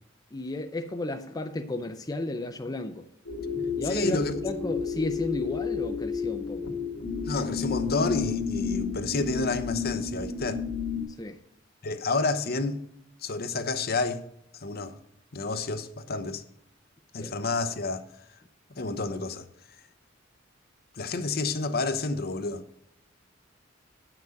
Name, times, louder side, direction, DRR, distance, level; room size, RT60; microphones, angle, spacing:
voice 1, 0.3-3.1 3.8-6.7 11.1-11.4 17.2-17.3, left 2 dB, 20° left, 0.5 m, -33 dB
sound 1, 3.3-11.0, left 5 dB, 85° left, 1.8 m, -31 dB
voice 2, 3.8-4.4 7.3-10.6 11.8-12.8 13.2-14.2 14.5-15.0 15.3-16.4 17.1-18.1 18.7-19.5 20.9-22.6, left 3 dB, 50° left, 0.8 m, -29 dB
9.0 x 6.0 x 6.4 m
head